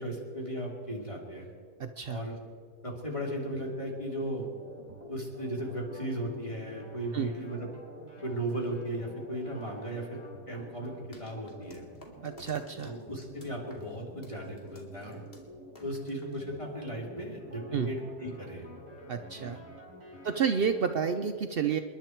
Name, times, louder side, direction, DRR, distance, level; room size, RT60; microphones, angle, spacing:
voice 1, 0.0-1.5 2.1-2.4 2.8-4.5 5.1-7.7 8.2-10.2 10.5-11.9 12.8-15.2 15.8-18.7 19.3-19.6, right 1 dB, 20° left, -1 dB, 3.0 m, -36 dB
voice 2, 1.8-2.2 7.1-7.3 12.2-12.9 17.7-17.9 19.1-19.6 20.2-21.8, right 7 dB, 80° right, 7 dB, 0.5 m, -30 dB
sound 1, 2.9-21.2, right 1 dB, 25° right, 5.4 m, -50 dB
sound 2, 11.1-16.9, left 1 dB, 35° left, 2.4 m, -57 dB
28.5 x 11.0 x 4.5 m, 2.1 s
omnidirectional pair, 1.8 m